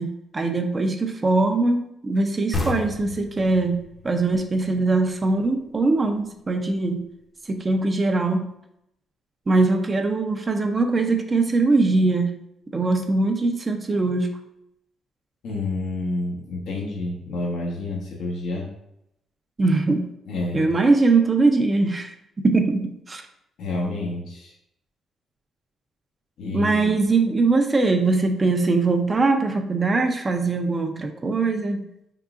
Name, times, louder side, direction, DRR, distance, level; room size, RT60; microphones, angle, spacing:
voice 1, 0.0-7.0 7.5-8.5 9.5-12.3 12.7-14.4 19.6-20.1 20.5-22.1 22.4-23.3 26.5-31.9, right 3 dB, 25° right, 5 dB, 0.5 m, -21 dB
sound 1, 2.5-5.9, left 3 dB, 25° left, 0.8 m, -32 dB
voice 2, 15.4-18.7 20.3-20.7 23.6-24.5 26.4-27.0, left 2 dB, 75° left, -3 dB, 1.0 m, -29 dB
4.7 x 3.7 x 2.4 m, 0.80 s
cardioid pair, 90°, 0 cm